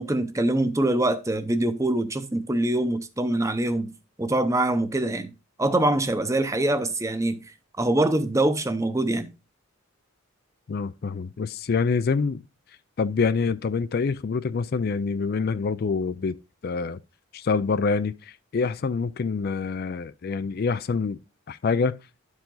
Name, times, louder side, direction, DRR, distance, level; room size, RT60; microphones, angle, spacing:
voice 1, 0.0-3.9 4.2-5.3 5.6-7.5 7.8-9.3, right 1 dB, 15° right, 0.7 m, -24 dB
voice 2, 10.7-12.4 13.0-16.4 16.6-17.0 17.3-21.2 21.5-22.0, left 5 dB, 50° left, 0.4 m, -26 dB
11.5 x 4.8 x 3.8 m
head